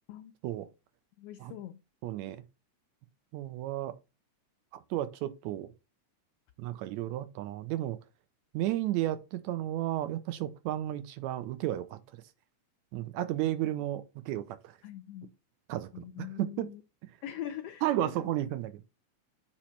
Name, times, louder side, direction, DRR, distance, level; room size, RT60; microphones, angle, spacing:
voice 1, 1.2-1.8 14.3-14.4 14.8-15.3 15.9-16.8 17.2-18.3, left 11 dB, 90° left, 1.3 m, -42 dB
voice 2, 2.0-2.4 3.3-3.9 4.7-5.7 6.6-8.0 8.5-12.0 12.9-14.7 15.7-16.1 16.4-16.7 17.8-18.8, right 14 dB, 80° right, 1.9 m, -33 dB
8.6 x 3.0 x 4.4 m
omnidirectional pair, 3.4 m